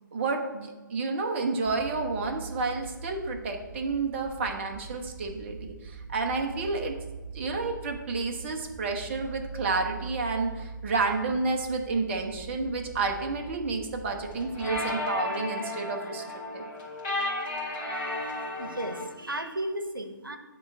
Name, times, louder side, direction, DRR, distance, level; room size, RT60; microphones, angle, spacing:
voice 1, 0.1-7.0 7.3-16.2 16.5-16.7, right 3 dB, 35° right, 3 dB, 0.7 m, -30 dB
sound 1, 1.6-14.9, right 4 dB, 15° right, 2.5 m, -43 dB
sound 2, 14.1-19.1, left 1 dB, 20° left, 2.1 m, -33 dB
voice 2, 17.9-20.4, right 1 dB, 85° right, 7 dB, 0.8 m, -35 dB
9.2 x 3.1 x 5.2 m, 1.2 s
figure-of-eight pair, 135°, 11 cm